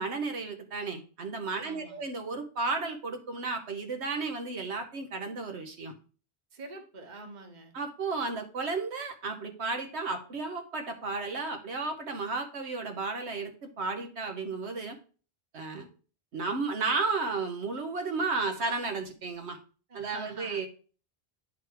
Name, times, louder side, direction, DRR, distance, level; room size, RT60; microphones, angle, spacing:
voice 1, 0.0-5.9 7.7-15.0 15.5-15.9 16.3-19.6 19.9-20.7, right 4 dB, 85° right, 5 dB, 1.3 m, -33 dB
voice 2, 1.6-2.1 6.5-7.7 19.9-20.6, right 3 dB, 45° right, 5 dB, 1.2 m, -45 dB
9.3 x 3.4 x 4.7 m, 0.37 s
omnidirectional pair, 1.1 m